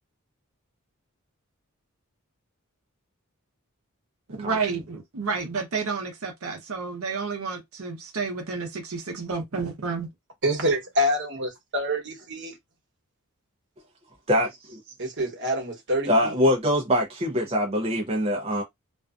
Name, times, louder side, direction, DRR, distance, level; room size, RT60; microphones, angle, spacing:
voice 1, 4.4-10.1, right 4 dB, 70° right, 0.7 m, -30 dB
voice 2, 10.4-12.5 15.0-16.3, equal, 55° right, 1.1 m, -26 dB
voice 3, 14.3-14.8 16.1-18.6, equal, 30° right, 0.6 m, -23 dB
2.5 x 2.3 x 2.4 m
head